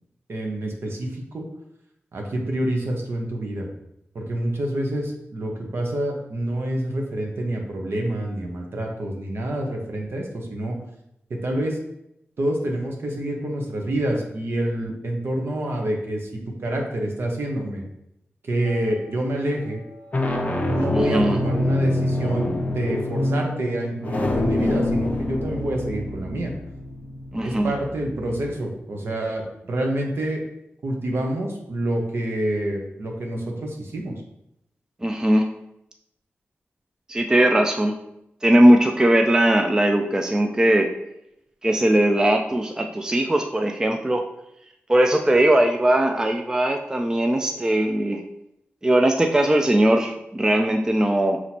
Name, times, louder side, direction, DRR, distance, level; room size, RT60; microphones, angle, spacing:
voice 1, 0.3-1.5 2.1-3.7 4.1-10.8 11.3-11.8 12.4-16.3 16.6-17.8 18.4-19.8 20.7-26.5 27.4-30.4 30.8-34.1, right 1 dB, 65° right, 1 dB, 0.9 m, -27 dB
sound 1, 18.7-19.1 19.9-28.5, left 1 dB, 35° left, 0.6 m, -26 dB
voice 2, 20.9-21.4 27.3-27.7 35.0-35.5 37.1-38.0 38.4-40.9 41.6-44.2 44.9-48.2 48.8-51.4, right 1 dB, 15° right, 4 dB, 0.3 m, -19 dB
5.8 x 3.0 x 2.8 m, 0.82 s
wide cardioid pair, 110°, 4 cm